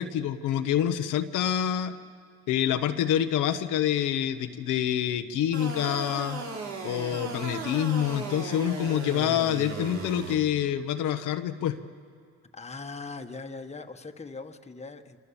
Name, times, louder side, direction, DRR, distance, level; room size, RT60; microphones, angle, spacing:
voice 1, 0.0-1.9 2.5-6.4 6.8-11.8, left 10 dB, 90° left, 7 dB, 1.1 m, -27 dB
sound 1, 5.5-10.3, right 4 dB, 65° right, 3.7 m, -36 dB
voice 2, 12.5-15.2, left 3 dB, 20° left, 6 dB, 1.4 m, -40 dB
28.0 x 26.5 x 7.1 m, 2.2 s
cardioid pair, 90°, 30 cm